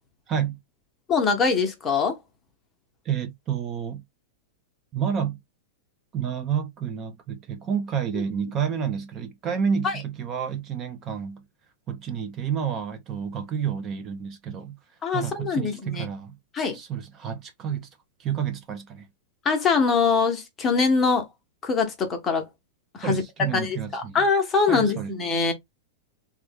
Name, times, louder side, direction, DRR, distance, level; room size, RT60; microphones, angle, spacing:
voice 1, 0.3-0.6 3.0-4.0 4.9-5.4 6.1-11.4 11.9-14.8 15.1-16.4 16.7-17.9 18.2-19.1 23.0-24.2 24.7-25.2, right 7 dB, 25° right, 0.5 m, -29 dB
voice 2, 1.1-2.2 9.8-9.9 15.0-16.1 16.5-16.8 19.4-21.3 21.6-22.5 22.9-23.2 23.5-25.5, left 5 dB, 20° left, 0.9 m, -23 dB
3.0 x 2.2 x 3.3 m
supercardioid pair, 145°, 0 cm